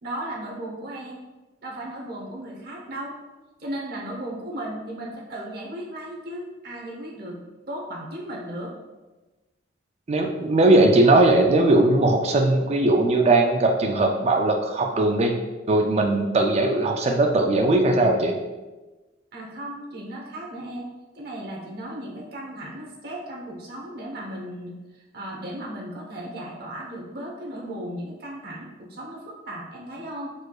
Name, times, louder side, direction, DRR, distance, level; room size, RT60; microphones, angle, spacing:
voice 1, 0.0-1.2 1.6-3.2 3.6-7.4 7.7-8.7 19.3-20.9 21.1-30.3, right 1 dB, 55° right, -3 dB, 1.0 m, -36 dB
voice 2, 10.1-15.4 15.7-18.4, right 2 dB, 35° right, 2 dB, 0.4 m, -19 dB
4.6 x 4.3 x 2.3 m, 1.2 s
head